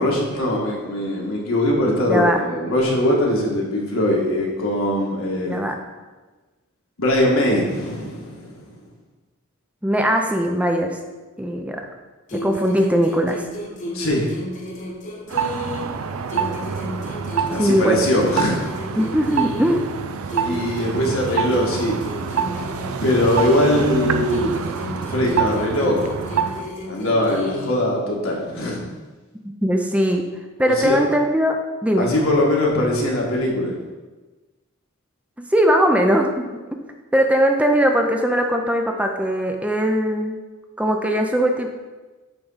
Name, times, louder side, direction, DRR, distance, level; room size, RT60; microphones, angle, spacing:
voice 1, 0.0-5.6 7.0-8.7 13.9-14.3 17.5-18.6 20.4-22.0 23.0-24.5 25.1-26.5 26.8-28.8 30.6-31.0 32.0-33.7, left 1 dB, 75° left, -2 dB, 1.7 m, -21 dB
voice 2, 2.1-2.4 5.5-5.7 9.8-11.0 11.4-11.8 12.3-13.4 17.6-18.0 19.0-19.9 29.4-30.2 30.6-31.6 31.8-32.1 35.4-36.5 37.1-40.3 40.8-41.7, equal, 5° right, 3 dB, 0.5 m, -20 dB
sound 1, 12.3-16.0 16.3-19.9 20.3-24.0 24.3-27.9, equal, 35° left, 1.1 m, -33 dB
sound 2, 15.3-26.7, right 6 dB, 85° right, 0.5 m, -27 dB
7.9 x 3.7 x 5.6 m, 1.2 s
head